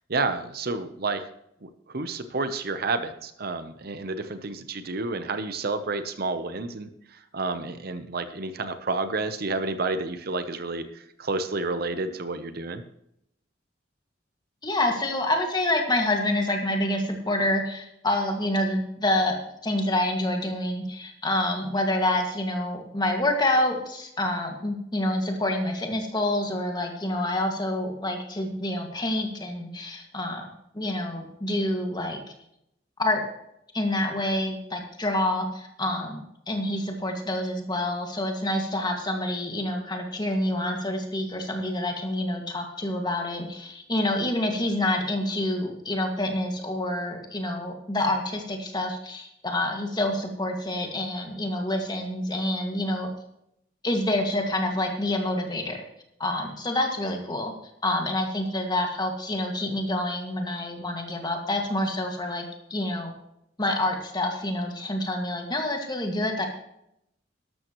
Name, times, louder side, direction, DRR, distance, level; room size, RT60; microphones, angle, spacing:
voice 1, 0.1-1.2 1.6-12.8, right 3 dB, 55° right, 10 dB, 0.8 m, -30 dB
voice 2, 14.6-19.3 19.6-30.5 30.7-32.2 33.0-33.2 33.7-53.1 53.8-55.8 56.2-57.5 57.8-62.5 62.7-63.1 63.6-66.5, left 1 dB, 25° left, 3 dB, 1.9 m, -27 dB
13.0 x 12.5 x 3.1 m, 0.77 s
head